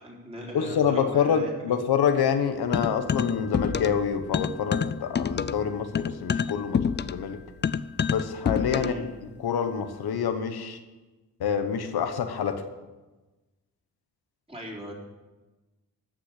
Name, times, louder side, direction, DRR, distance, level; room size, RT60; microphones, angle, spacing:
voice 1, 0.0-1.8 8.8-9.1 14.5-14.9, equal, 15° right, -3 dB, 4.0 m, -39 dB
voice 2, 0.5-7.4 8.1-8.9 9.4-10.8 11.4-12.6, left 7 dB, 90° left, 7 dB, 1.2 m, -26 dB
sound 1, 2.7-4.1 4.3-9.1, left 6 dB, 30° left, 0.4 m, -27 dB
14.0 x 6.3 x 8.3 m, 1.2 s
cardioid pair, 90°, 37 cm